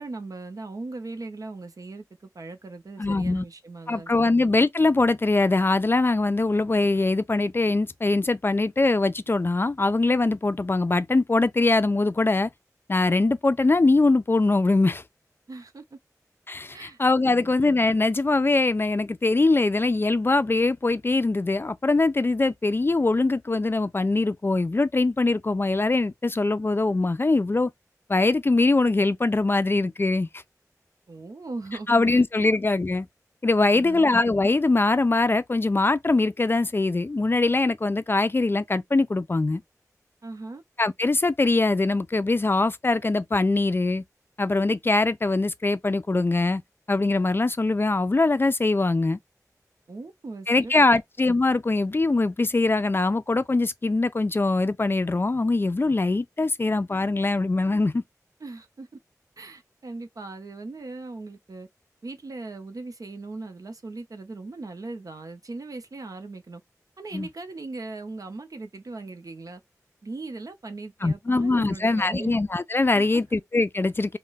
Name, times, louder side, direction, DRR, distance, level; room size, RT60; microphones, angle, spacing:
voice 1, 0.0-4.3 15.5-16.0 16.7-17.0 17.2-17.5 31.1-32.5 33.6-34.1 40.2-40.6 49.9-51.0 58.4-58.9 59.4-61.7 62.0-66.6 67.0-69.6 70.0-72.3 72.9-73.2, right 3 dB, 70° right, 0.7 m, -39 dB
voice 2, 3.0-3.4 3.9-12.5 12.9-15.0 16.5-27.7 28.1-30.3 31.9-33.1 33.4-39.6 40.8-44.0 44.4-46.6 46.9-49.2 50.5-58.0 67.1-67.3 71.0-74.2, left 3 dB, 35° left, 0.4 m, -22 dB
2.2 x 2.1 x 3.9 m
wide cardioid pair, 50°, 6 cm